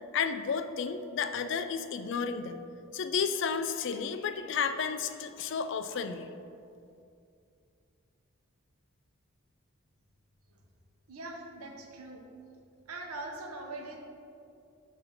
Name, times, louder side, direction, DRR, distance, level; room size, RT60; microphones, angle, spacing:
voice 1, 0.1-2.6 2.9-6.3, left 6 dB, 55° left, 9 dB, 0.3 m, -32 dB
voice 2, 11.1-12.2 12.9-14.0, right 2 dB, 90° right, 1 dB, 0.8 m, -41 dB
7.6 x 2.7 x 5.7 m, 2.5 s
head